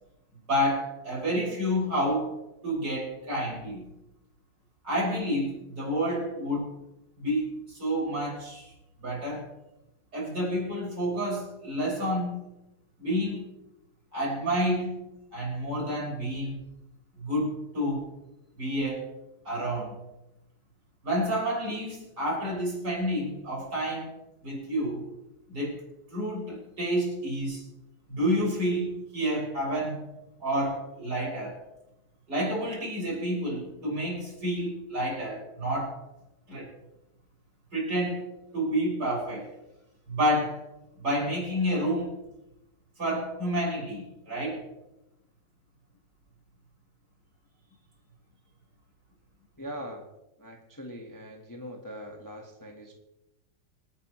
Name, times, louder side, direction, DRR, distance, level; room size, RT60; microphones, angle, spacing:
voice 1, 0.5-2.4 2.6-3.8 4.8-6.7 7.2-8.7 9.0-9.5 10.1-12.3 13.0-13.4 14.1-14.9 15.3-16.6 17.2-18.1 18.6-19.1 19.5-20.0 21.0-24.1 24.4-25.0 25.5-25.8 26.1-27.6 28.1-30.0 30.4-31.6 32.3-36.0 36.5-36.7 37.7-38.2 38.5-39.5 40.1-40.6 41.0-42.2 43.0-44.6, equal, 55° right, -5 dB, 7.0 m, -29 dB
voice 2, 49.6-50.1 50.4-52.9, equal, 10° left, 1 dB, 1.3 m, -41 dB
27.0 x 9.7 x 3.2 m, 0.92 s
omnidirectional pair, 2.2 m